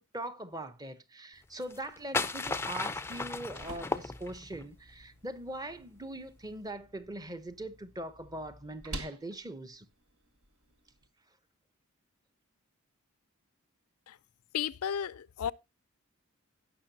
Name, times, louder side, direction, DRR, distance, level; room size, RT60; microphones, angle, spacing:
voice 1, 0.0-9.9, right 1 dB, 15° right, 0.8 m, -41 dB
sound 1, 1.6-4.7, left 3 dB, 10° left, 0.4 m, -35 dB
sound 2, 3.1-11.1, right 2 dB, 70° right, 1.5 m, -50 dB
voice 2, 14.5-15.5, left 8 dB, 90° left, 0.5 m, -33 dB
17.0 x 6.0 x 2.7 m
head